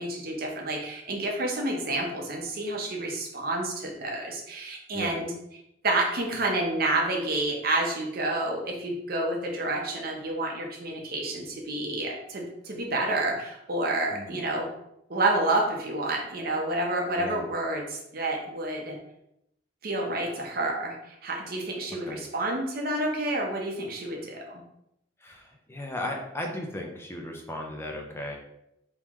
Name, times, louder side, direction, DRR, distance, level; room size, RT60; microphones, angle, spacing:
voice 1, 0.0-5.3 5.8-14.7 15.1-19.0 19.8-24.6, right 2 dB, 55° right, 0 dB, 0.8 m, -29 dB
voice 2, 14.1-14.4 17.2-17.4 22.0-22.2 25.2-28.4, left 1 dB, 15° left, 1 dB, 0.5 m, -36 dB
3.7 x 3.1 x 3.0 m, 0.81 s
head